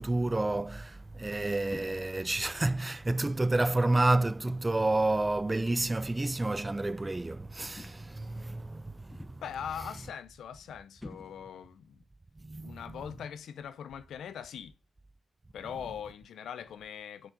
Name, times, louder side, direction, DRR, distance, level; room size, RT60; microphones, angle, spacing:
voice 1, 0.0-10.0 12.4-13.1 15.6-16.0, right 2 dB, 25° right, 0.4 m, -30 dB
sound 1, 1.7-2.2 3.1-3.4 4.5-5.0 6.1-6.3 7.8-8.3 9.1-9.6 11.0-11.7, left 1 dB, 20° left, 0.9 m, -49 dB
voice 2, 9.4-12.0 12.6-14.7 15.5-17.3, left 8 dB, 85° left, 0.6 m, -41 dB
6.1 x 4.7 x 5.2 m
cardioid pair, 55°, 0 cm